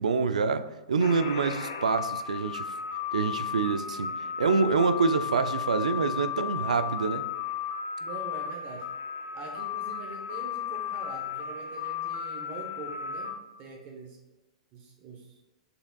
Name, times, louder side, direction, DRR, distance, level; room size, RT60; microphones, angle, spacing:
voice 1, 0.0-2.7 3.1-4.1 4.4-7.3, right 5 dB, 85° right, 0.3 m, -26 dB
sound 1, 1.0-13.3, left 8 dB, 70° left, 0.6 m, -34 dB
voice 2, 8.0-8.9 9.3-13.3 13.6-14.2 14.7-15.3, right 3 dB, 40° right, 0.8 m, -43 dB
6.8 x 3.3 x 2.2 m
hypercardioid pair, 120°, 4 cm